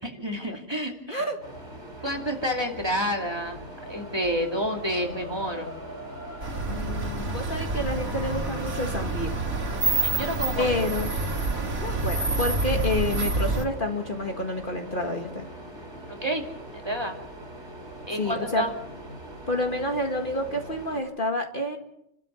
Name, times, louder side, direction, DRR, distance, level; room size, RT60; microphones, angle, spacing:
voice 1, 0.0-1.2 2.0-3.6 3.9-5.7 10.0-10.8 16.1-16.4 16.7-17.1 18.1-18.7, equal, 20° right, 1 dB, 2.7 m, -29 dB
sound 1, 1.4-21.0, right 1 dB, 55° right, 4.6 m, -42 dB
sound 2, 3.7-13.9, equal, 75° left, 7.0 m, -46 dB
sound 3, 6.4-13.6, right 3 dB, 85° right, 2.6 m, -28 dB
voice 2, 6.6-9.4 10.6-11.1 11.8-15.5 18.2-18.7 19.5-21.8, left 1 dB, 40° left, 3 dB, 1.9 m, -29 dB
30.0 x 13.5 x 6.9 m, 0.79 s
omnidirectional pair, 1.4 m